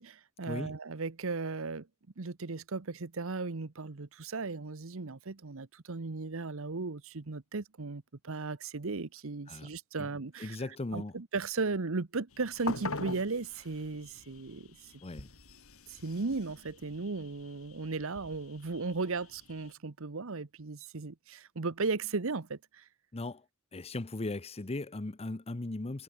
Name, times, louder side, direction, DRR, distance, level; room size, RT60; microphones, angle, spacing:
voice 1, 0.0-1.9 2.2-10.6 10.9-14.7 15.9-22.9, right 3 dB, 65° right, 1.0 m, -36 dB
voice 2, 10.4-11.1 15.0-15.3 23.1-23.4 23.7-26.0, left 2 dB, 30° left, 0.8 m, -38 dB
sound 1, 12.3-19.7, left 3 dB, 75° left, 5.2 m, -44 dB
head